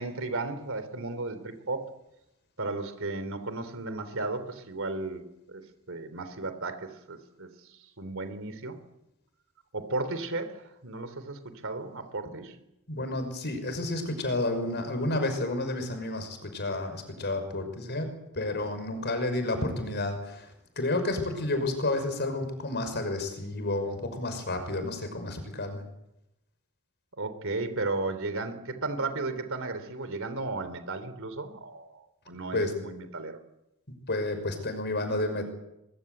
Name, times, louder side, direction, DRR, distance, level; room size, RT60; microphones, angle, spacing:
voice 1, 0.0-1.8 2.6-8.8 9.7-12.6 27.2-33.4, right 3 dB, 65° right, 10 dB, 3.5 m, -35 dB
voice 2, 12.9-18.1 18.3-20.5 20.8-25.8 32.5-32.7 34.1-35.5, left 2 dB, 50° left, 8 dB, 5.8 m, -30 dB
24.0 x 22.5 x 8.2 m, 0.88 s
head